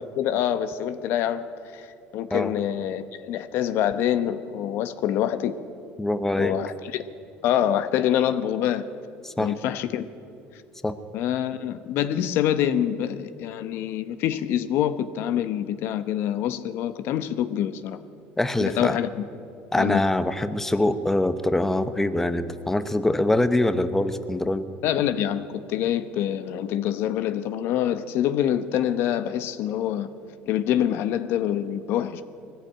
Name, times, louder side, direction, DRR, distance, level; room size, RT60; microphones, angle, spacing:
voice 1, 0.0-1.4 1.7-1.9 2.1-5.5 6.4-7.0 7.4-8.8 9.4-10.0 11.1-18.0 18.6-19.1 19.8-20.0 24.8-30.1 30.5-32.2, left 10 dB, 65° left, 12 dB, 0.9 m, -25 dB
voice 2, 6.0-6.6 9.2-9.5 10.8-10.9 18.4-19.0 19.7-24.7, left 1 dB, 10° left, 11 dB, 0.9 m, -24 dB
20.5 x 15.0 x 8.8 m, 2.5 s
supercardioid pair, 110°, 4 cm